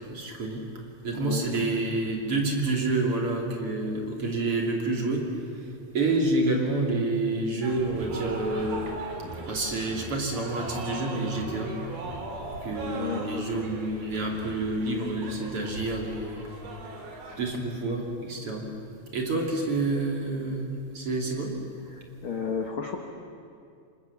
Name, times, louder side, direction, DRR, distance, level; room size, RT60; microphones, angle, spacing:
voice 1, 0.1-0.6 1.0-9.0 9.5-11.7 12.6-16.5 17.4-18.7 19.1-21.6, right 2 dB, 40° right, 0 dB, 3.5 m, -28 dB
voice 2, 1.2-1.8 12.9-13.7 21.9-23.0, left 6 dB, 55° left, 3 dB, 1.5 m, -33 dB
sound 1, 7.6-17.4, right 2 dB, 75° right, 5.0 m, -38 dB
28.5 x 25.5 x 7.3 m, 2.5 s
omnidirectional pair, 4.4 m